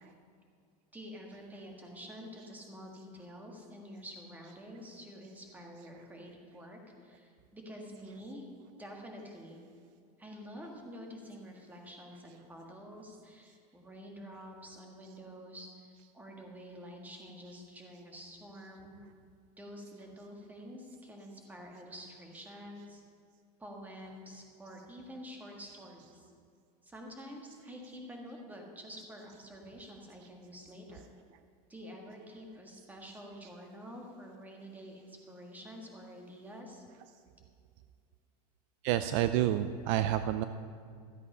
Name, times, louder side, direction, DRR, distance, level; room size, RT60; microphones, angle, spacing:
voice 1, 0.9-8.5 8.8-9.6 10.2-19.0 19.6-23.0 23.6-26.3 26.8-31.0 31.7-36.8, equal, 10° right, 1 dB, 1.6 m, -48 dB
voice 2, 38.8-40.4, right 12 dB, 50° right, 11 dB, 0.4 m, -29 dB
13.5 x 8.3 x 5.5 m, 2.3 s
supercardioid pair, 150°, 20 cm